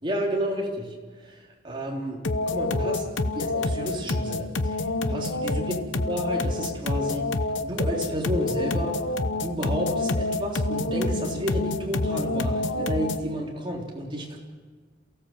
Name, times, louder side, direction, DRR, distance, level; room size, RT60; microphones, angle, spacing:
voice 1, 0.0-3.1 3.3-5.8 6.1-7.3 7.6-9.0 9.3-14.4, equal, 25° right, -1 dB, 3.7 m, -31 dB
sound 1, 2.2-13.3, left 2 dB, 75° left, 1.0 m, -27 dB
28.0 x 16.5 x 7.5 m, 1.5 s
head